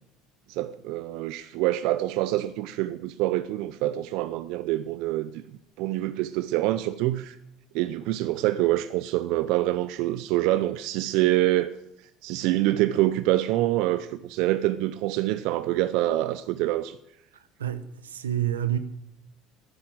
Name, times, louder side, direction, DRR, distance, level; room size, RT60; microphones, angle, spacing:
voice 1, 0.5-5.4 5.8-7.4 7.7-11.8 12.2-17.0, right 15 dB, 70° right, 0.6 m, -26 dB
voice 2, 17.6-18.8, right 11 dB, 90° right, 1.0 m, -28 dB
13.5 x 10.0 x 7.6 m
hypercardioid pair, 70°, 0 cm